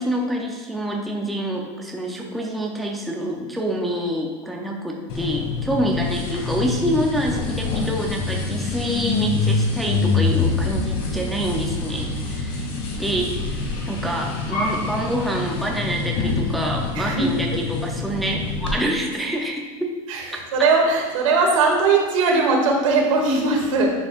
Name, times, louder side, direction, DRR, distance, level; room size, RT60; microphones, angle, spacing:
voice 1, 0.0-12.7 12.9-19.6, equal, ahead, -1 dB, 0.4 m, -26 dB
sound 1, 5.1-18.7, left 4 dB, 35° left, 1.6 m, -26 dB
voice 2, 17.0-17.3 20.1-20.3 20.5-23.9, right 3 dB, 80° right, 0 dB, 2.0 m, -19 dB
11.0 x 7.0 x 2.4 m, 1.3 s
supercardioid pair, 180°, 16 cm